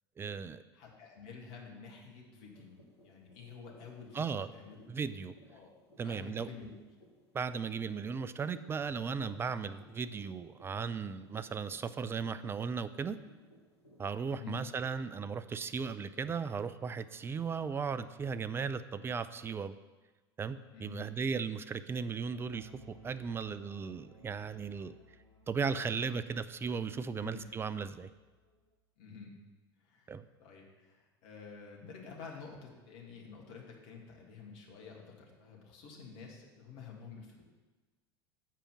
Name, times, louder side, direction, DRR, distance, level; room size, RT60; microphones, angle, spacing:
voice 1, 0.2-0.6 4.1-4.5 4.9-5.3 6.0-6.5 7.3-13.2 14.0-19.8 20.4-25.0 25.5-28.1 30.1-30.3, right 5 dB, 15° right, 13 dB, 0.4 m, -36 dB
voice 2, 0.7-2.8 3.0-4.8 5.5-5.7 6.0-6.7 14.3-14.6 20.7-21.1 27.1-27.4 29.0-29.3 29.8-37.4, left 5 dB, 50° left, -1 dB, 2.0 m, -49 dB
sound 1, 2.5-16.5, equal, 90° left, 1.2 m, -62 dB
sound 2, 22.5-28.7, right 1 dB, 80° right, 1.2 m, -60 dB
7.4 x 5.0 x 7.0 m, 1.2 s
figure-of-eight pair, 80°, 14 cm